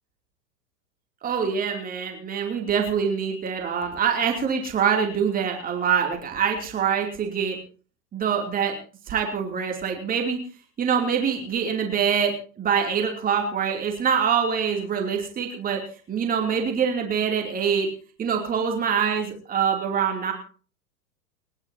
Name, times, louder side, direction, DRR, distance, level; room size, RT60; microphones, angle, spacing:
voice 1, 1.2-7.6 8.1-8.7 9.1-10.4 10.8-15.8 16.1-17.9 18.2-20.3, right 7 dB, 20° right, 2 dB, 2.9 m, -24 dB
30.0 x 11.0 x 2.8 m, 0.40 s
figure-of-eight pair, 100°, 47 cm